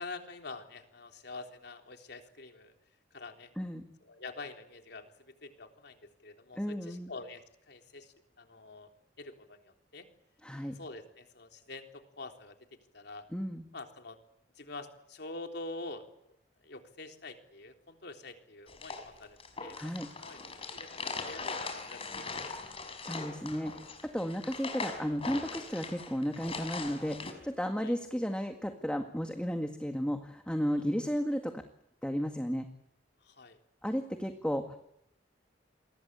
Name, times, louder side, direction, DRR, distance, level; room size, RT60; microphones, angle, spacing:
voice 1, 0.0-2.7 3.1-3.5 4.0-8.9 9.2-10.0 10.7-12.6 12.9-13.2 13.7-14.2 14.6-16.0 16.6-19.8 20.2-20.4 20.7-23.0 27.8-27.9 30.7-30.8 33.2-33.6, left 3 dB, 65° left, 5 dB, 3.7 m, -46 dB
voice 2, 6.6-7.1 10.4-10.8 13.3-13.7 19.8-20.1 23.0-23.9 24.1-31.6 32.0-32.7 33.8-34.8, equal, 5° left, 5 dB, 1.9 m, -33 dB
sound 1, 18.7-27.3, left 4 dB, 30° left, 5.1 m, -41 dB
28.5 x 23.0 x 8.3 m, 0.76 s
head